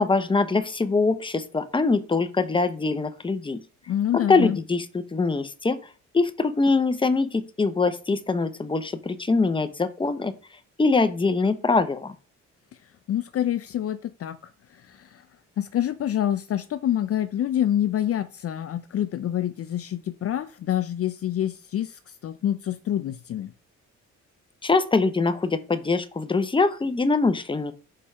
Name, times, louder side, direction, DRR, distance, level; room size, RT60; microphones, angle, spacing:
voice 1, 0.0-3.6 4.1-4.8 5.1-5.8 6.1-10.3 10.8-12.1 24.6-27.8, left 3 dB, 15° left, 0.9 m, -23 dB
voice 2, 3.9-4.6 13.1-15.2 15.6-23.5, left 11 dB, 50° left, 0.5 m, -27 dB
5.4 x 4.8 x 5.6 m
cardioid pair, 90°, 30 cm